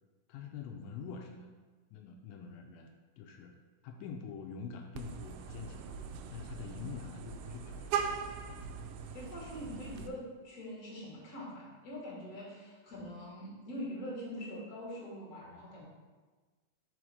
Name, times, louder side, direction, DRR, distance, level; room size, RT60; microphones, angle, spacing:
voice 1, 0.3-1.6 1.9-3.5 3.8-5.9 6.3-8.1, left 6 dB, 85° left, 3 dB, 2.3 m, -45 dB
Vehicle horn car horn honking, 4.9-10.1, right 7 dB, 90° right, 2.3 m, -40 dB
voice 2, 6.6-7.0 9.1-15.8, equal, 35° left, -5 dB, 1.9 m, -44 dB
5.1 x 4.8 x 6.3 m, 1.3 s
omnidirectional pair, 4.1 m